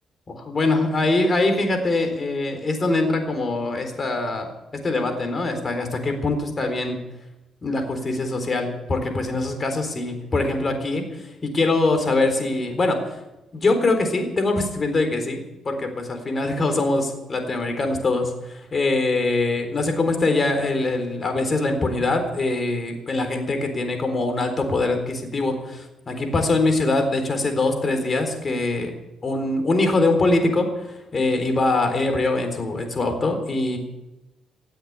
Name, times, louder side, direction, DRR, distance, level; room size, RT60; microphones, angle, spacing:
voice 1, 0.3-4.5 4.8-7.0 7.6-13.2 13.5-28.9 29.2-33.8, left 2 dB, 35° left, 6 dB, 3.9 m, -23 dB
17.5 x 7.9 x 9.6 m, 0.98 s
cardioid pair, 90°, 0 cm